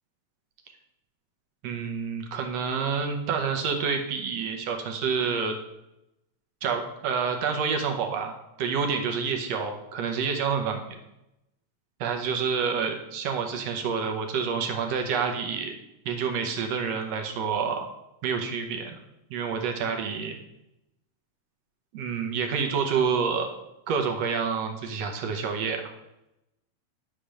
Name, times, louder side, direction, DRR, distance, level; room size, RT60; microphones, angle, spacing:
voice 1, 1.6-5.6 6.6-8.3 8.6-11.0 12.0-15.7 16.1-17.9 18.2-19.0 19.3-20.4 21.9-23.6 23.9-25.8, right 6 dB, 70° right, 4 dB, 1.9 m, -28 dB
10.0 x 3.4 x 6.2 m, 0.88 s
omnidirectional pair, 3.3 m